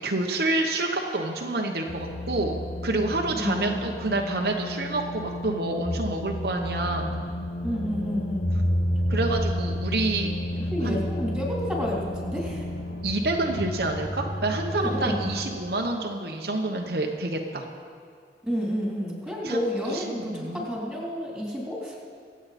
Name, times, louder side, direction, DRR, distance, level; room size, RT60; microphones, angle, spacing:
voice 1, 0.0-7.1 9.1-10.3 10.8-11.0 13.0-17.6 19.4-20.6, right 2 dB, 60° right, 1 dB, 1.0 m, -28 dB
sound 1, 1.9-15.5, left 1 dB, 70° left, 1.4 m, -31 dB
voice 2, 3.3-3.9 7.6-8.5 10.5-12.6 14.7-15.2 18.5-22.0, equal, ahead, -4 dB, 3.2 m, -30 dB
24.5 x 8.6 x 4.2 m, 2.3 s
head